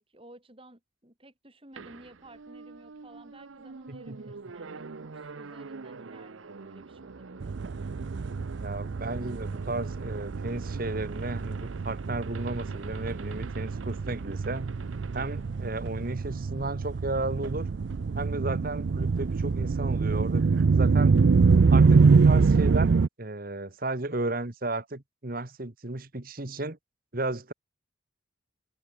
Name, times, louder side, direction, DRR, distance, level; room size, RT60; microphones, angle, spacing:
voice 1, 0.0-7.6, right 1 dB, 25° right, 4.6 m, -54 dB
sound 1, 1.8-16.5, right 4 dB, 85° right, 0.7 m, -44 dB
voice 2, 3.9-4.2 8.6-14.7 15.1-17.7 18.1-21.2 21.7-22.9 23.2-26.8 27.1-27.5, right 2 dB, 45° right, 1.5 m, -34 dB
sound 2, 7.4-23.1, right 4 dB, 65° right, 0.4 m, -25 dB
head